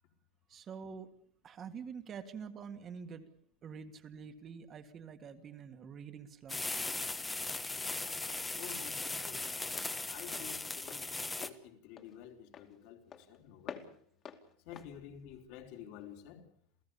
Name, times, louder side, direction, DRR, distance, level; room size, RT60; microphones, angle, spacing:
voice 1, 0.5-1.1 1.4-3.3 3.6-6.6, right 6 dB, 25° right, 1.8 m, -46 dB
sound 1, 6.5-11.5, left 3 dB, 10° left, 1.2 m, -38 dB
voice 2, 8.6-9.4 10.1-11.1 11.3-13.0 13.3-13.8 14.7-16.4, left 9 dB, 55° left, 4.0 m, -50 dB
Walk footsteps, 9.7-16.2, left 7 dB, 30° left, 2.5 m, -52 dB
29.0 x 17.0 x 7.1 m
supercardioid pair, 165°, 0 cm